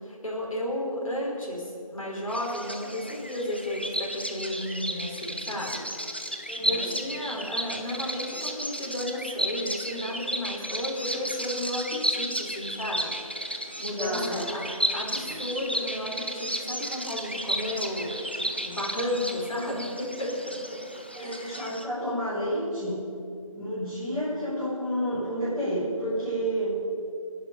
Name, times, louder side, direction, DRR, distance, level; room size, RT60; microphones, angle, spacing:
voice 1, 0.0-5.8 6.7-13.1 13.8-20.6 21.2-21.6, left 1 dB, 70° left, -3 dB, 4.9 m, -33 dB
Bird vocalization bird call bird song, 2.3-21.8, equal, 20° left, 0.5 m, -33 dB
voice 2, 6.5-6.8 13.8-14.4 15.3-15.4 21.1-23.1 23.5-26.8, equal, ahead, -21 dB, 1.9 m, -30 dB
24.5 x 10.5 x 5.4 m, 2.6 s
figure-of-eight pair, 170°, 18 cm